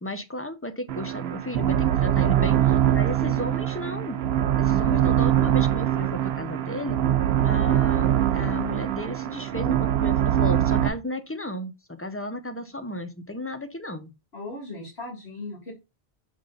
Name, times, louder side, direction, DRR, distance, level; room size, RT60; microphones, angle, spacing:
voice 1, 0.0-4.2 4.5-7.0 7.4-14.1, left 1 dB, 15° left, 0.5 m, -34 dB
sound 1, 0.9-10.9, right 11 dB, 75° right, 0.9 m, -23 dB
voice 2, 4.6-5.0 14.3-15.7, left 2 dB, 85° left, 2.1 m, -39 dB
6.8 x 3.6 x 3.8 m
omnidirectional pair, 1.1 m